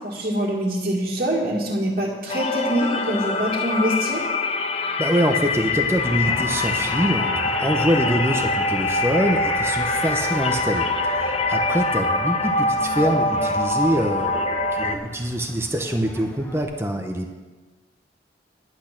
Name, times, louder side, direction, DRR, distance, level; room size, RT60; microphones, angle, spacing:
voice 1, 0.0-4.2, equal, 45° right, -6 dB, 2.0 m, -24 dB
sound 1, 2.3-15.0, left 2 dB, 35° left, 0.6 m, -24 dB
voice 2, 5.0-17.3, equal, 15° right, 3 dB, 0.8 m, -24 dB
Race car auto racing, 5.3-16.6, equal, 10° left, 1.1 m, -35 dB
10.5 x 8.7 x 5.9 m, 1.2 s
head